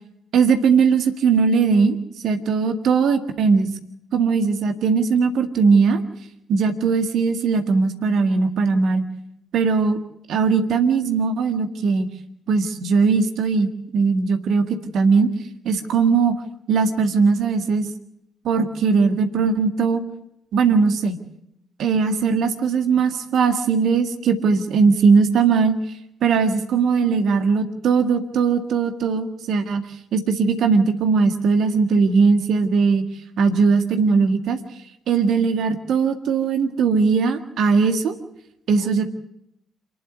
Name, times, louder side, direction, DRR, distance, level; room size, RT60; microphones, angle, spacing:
voice 1, 0.3-2.0 2.2-3.7 4.1-6.0 6.5-9.1 9.5-10.0 10.3-12.1 12.5-14.6 14.9-15.3 15.7-16.4 16.7-17.9 18.4-20.0 20.5-21.2 21.8-25.8 26.2-29.8 30.1-33.1 33.4-34.6 35.1-38.2 38.7-39.1, right 5 dB, 55° right, 7 dB, 1.8 m, -19 dB
27.5 x 11.0 x 8.4 m, 0.79 s
figure-of-eight pair, 40°, 0 cm